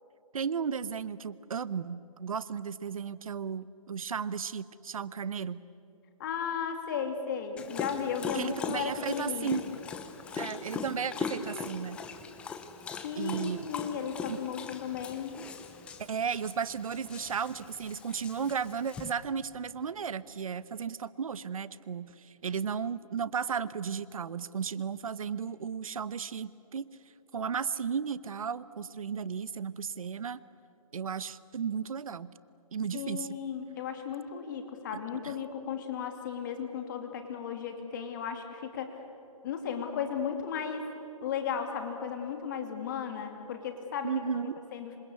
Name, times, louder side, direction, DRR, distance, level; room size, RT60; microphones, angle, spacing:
voice 1, 0.3-5.6 8.3-9.6 10.3-12.0 13.2-13.7 14.3-14.4 16.0-27.0 27.3-30.4 30.9-32.3 32.7-33.3 35.1-35.3 44.0-44.7, right 6 dB, 65° right, 17 dB, 1.0 m, -34 dB
voice 2, 6.2-9.6 13.0-15.4 32.9-39.0 39.4-40.9 41.2-45.0, left 7 dB, 30° left, 5 dB, 2.6 m, -35 dB
Dog, 7.6-19.1, left 5 dB, 5° left, 0.7 m, -40 dB
27.0 x 26.0 x 8.4 m, 2.8 s
hypercardioid pair, 165°, 19 cm